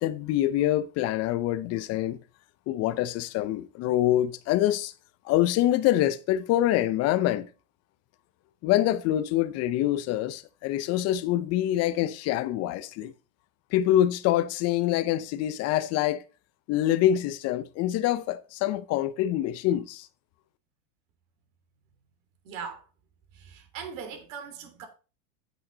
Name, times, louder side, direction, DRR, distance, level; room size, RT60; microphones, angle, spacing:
voice 1, 0.0-2.2 2.7-4.9 5.2-7.5 8.6-13.1 13.7-16.2 16.7-20.1, left 13 dB, 35° left, 0.8 m, -25 dB
voice 2, 22.4-22.9 23.3-24.9, right 6 dB, 65° right, 3.2 m, -40 dB
9.5 x 8.3 x 4.0 m
supercardioid pair, 140°, 41 cm